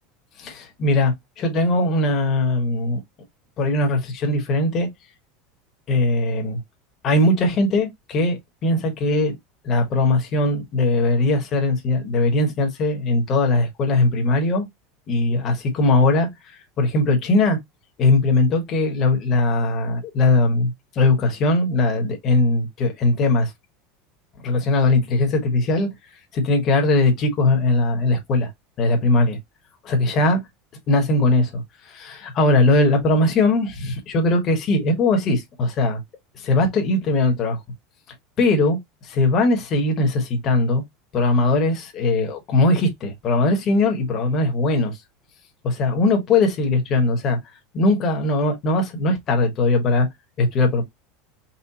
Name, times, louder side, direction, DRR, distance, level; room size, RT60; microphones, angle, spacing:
voice 1, 0.4-3.0 3.6-4.9 5.9-6.6 7.0-9.4 9.6-14.6 15.1-16.3 16.8-17.6 18.0-23.5 24.4-25.9 26.3-28.5 28.8-29.4 29.8-30.4 30.9-31.6 31.9-36.0 36.3-37.6 38.4-38.8 39.0-40.8 41.1-44.9 45.6-47.4 47.7-50.1 50.4-50.8, left 2 dB, 30° left, 1.3 m, -20 dB
4.3 x 2.3 x 4.2 m
supercardioid pair, 160°, 0 cm